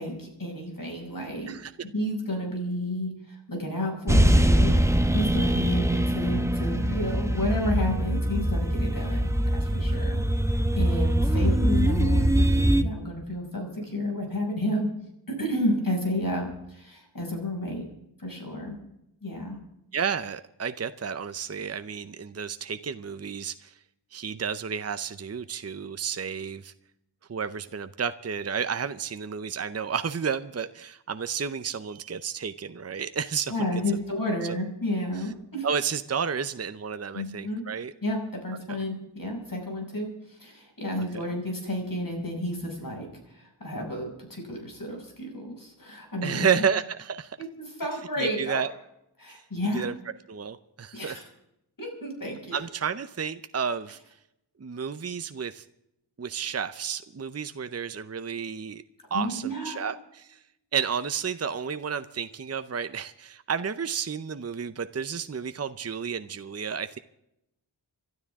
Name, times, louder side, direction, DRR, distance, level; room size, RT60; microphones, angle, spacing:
voice 1, 0.0-1.6 1.9-4.8 5.1-10.2 10.7-14.9 15.3-17.8 18.2-18.8 19.2-19.6 33.5-35.7 37.1-37.6 38.0-46.5 47.4-48.6 49.2-49.8 50.9-51.2 51.8-52.6 59.1-59.9, left 1 dB, 45° left, 1 dB, 6.2 m, -31 dB
sound 1, 4.1-12.8, right 1 dB, 5° right, 1.0 m, -23 dB
voice 2, 19.9-23.8 24.1-26.7 27.3-33.7 34.4-34.6 35.6-37.9 38.7-38.8 41.1-41.2 46.2-47.4 48.2-48.7 49.3-49.4 49.7-49.9 50.3-51.2 52.5-54.0 54.6-55.6 56.2-58.8 59.1-60.4 60.7-67.0, right 7 dB, 35° right, 11 dB, 0.7 m, -31 dB
28.0 x 12.5 x 3.6 m, 0.83 s
wide cardioid pair, 70°, 46 cm